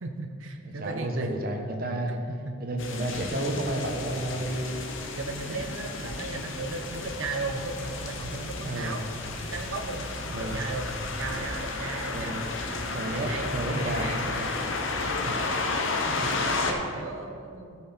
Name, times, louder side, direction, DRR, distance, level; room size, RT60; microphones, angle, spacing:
voice 1, 0.0-1.3 2.0-2.6 2.9-3.1 5.2-9.0 9.4-10.9 11.2-12.6 13.1-14.5 15.0-15.4 15.8-17.9, right 3 dB, 70° right, 3 dB, 0.7 m, -36 dB
voice 2, 0.6-2.1 2.6-4.6 5.5-5.6 8.6-9.0 10.3-10.6 12.1-12.4 12.9-14.0 16.2-16.3, right 1 dB, 45° right, 2 dB, 1.1 m, -31 dB
sound 1, 2.8-16.7, left 3 dB, 65° left, 0.9 m, -32 dB
13.5 x 5.9 x 4.4 m, 2.5 s
head